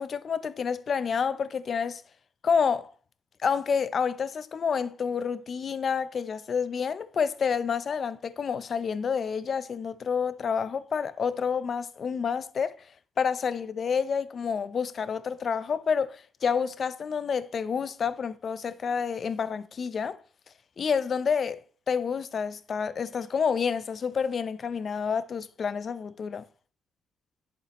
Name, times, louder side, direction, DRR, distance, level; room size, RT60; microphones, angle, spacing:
voice 1, 0.0-2.0 2.4-2.9 3.4-12.7 13.2-20.2 20.8-21.6 21.9-26.4, left 6 dB, 50° left, 0.6 m, -29 dB
11.0 x 7.2 x 3.0 m
cardioid pair, 90°, 0 cm